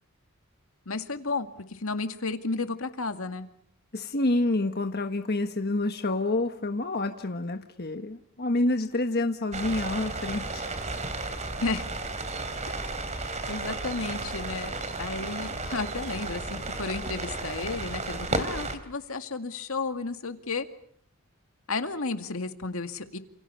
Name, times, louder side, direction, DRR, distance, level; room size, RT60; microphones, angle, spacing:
voice 1, 0.9-3.5 11.6-11.8 13.5-20.7 21.7-23.2, left 3 dB, 75° left, 7 dB, 2.1 m, -33 dB
voice 2, 3.9-10.7, left 2 dB, 45° left, 6 dB, 1.3 m, -28 dB
sound 1, 9.5-18.8, right 2 dB, 35° right, 3.1 m, -33 dB
29.5 x 29.0 x 5.6 m, 0.65 s
head